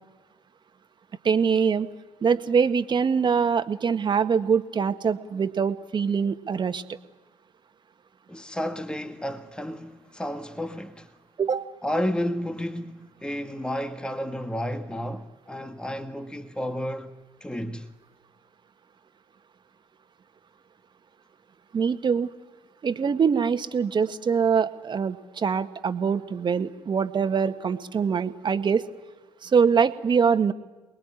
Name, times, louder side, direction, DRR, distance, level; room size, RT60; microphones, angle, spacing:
voice 1, 1.2-1.9 2.2-6.8 11.4-11.6 21.7-22.3 22.8-28.8 29.4-30.5, right 6 dB, 40° right, 1.8 m, -23 dB
voice 2, 8.3-11.1 11.8-17.1 17.4-17.9, equal, 10° left, 1.8 m, -31 dB
28.5 x 21.0 x 10.0 m
hypercardioid pair, 55°, 11 cm